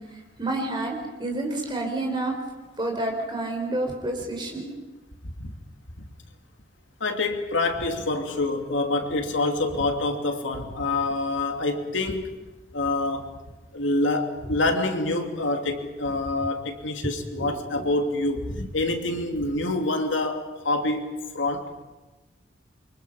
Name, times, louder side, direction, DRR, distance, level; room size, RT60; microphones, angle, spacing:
voice 1, 0.4-2.4 2.8-4.7 17.4-17.5 17.7-17.9, right 2 dB, 25° right, 4.6 m, -29 dB
voice 2, 7.0-12.3 12.7-13.4 13.7-21.7, left 2 dB, 80° left, 2.6 m, -26 dB
28.0 x 24.5 x 5.7 m
head